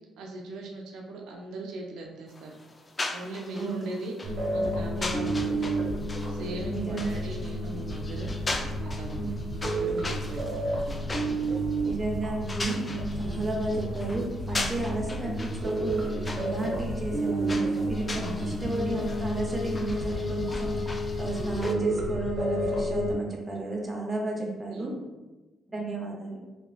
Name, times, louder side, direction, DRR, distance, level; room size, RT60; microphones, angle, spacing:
voice 1, 0.2-2.5 3.1-5.8 6.3-11.1 13.2-13.5 18.2-18.7 24.3-24.9, right 2 dB, 85° right, 0 dB, 0.4 m, -39 dB
sound 1, 2.3-21.7, left 2 dB, 25° left, 0.3 m, -40 dB
voice 2, 3.5-3.9 6.7-7.1 7.4-7.5 9.2-9.3 11.8-12.8 13.1-24.9 25.7-26.4, right 2 dB, 20° right, -2 dB, 0.7 m, -33 dB
sound 2, 4.2-23.2, right 1 dB, 45° right, 1.1 m, -31 dB
3.2 x 2.4 x 2.4 m, 1.1 s
cardioid pair, 90°, 0 cm